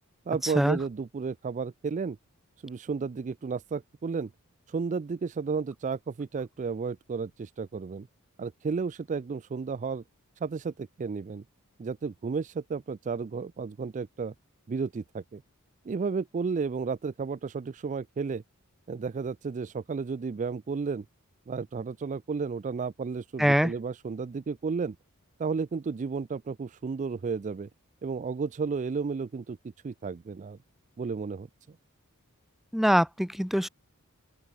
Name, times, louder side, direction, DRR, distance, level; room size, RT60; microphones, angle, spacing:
voice 1, 0.3-2.2 2.6-4.3 4.7-8.1 8.4-10.0 10.4-11.4 11.8-14.3 14.7-15.4 15.9-18.4 18.9-21.0 21.5-25.0 25.4-27.7 28.0-29.6 29.8-30.6 31.0-31.8, right 5 dB, 35° right, 0.3 m, -32 dB
voice 2, 23.4-23.7 32.7-33.7, equal, ahead, 0.7 m, -23 dB
open air
head